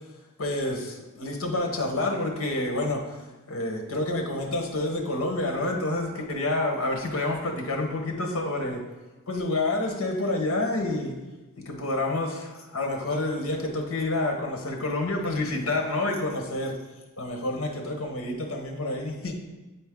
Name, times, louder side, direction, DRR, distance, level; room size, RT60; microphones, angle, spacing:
voice 1, 0.4-8.8 9.3-11.1 11.6-16.7 17.2-19.3, left 2 dB, 75° left, 2 dB, 1.1 m, -28 dB
8.3 x 4.4 x 3.6 m, 1.1 s
head